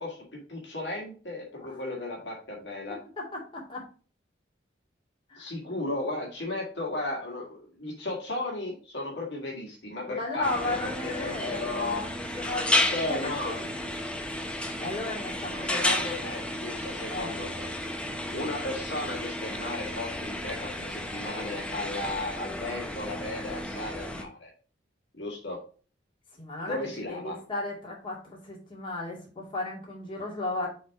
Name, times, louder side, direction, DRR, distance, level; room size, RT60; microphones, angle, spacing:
voice 1, 0.0-3.0 5.4-10.8 11.0-12.0 12.9-13.6 15.5-17.7 18.3-24.5 25.1-25.6 26.6-27.4, left 2 dB, 65° left, -1 dB, 1.8 m, -35 dB
voice 2, 3.2-3.8 5.3-5.8 10.1-12.8 13.1-13.7 14.8-15.7 17.1-17.3 26.4-26.8 27.1-30.7, left 2 dB, 30° left, -4 dB, 2.2 m, -35 dB
sound 1, 10.4-24.2, left 1 dB, 5° left, 0.7 m, -32 dB
6.3 x 3.5 x 4.6 m, 0.39 s
head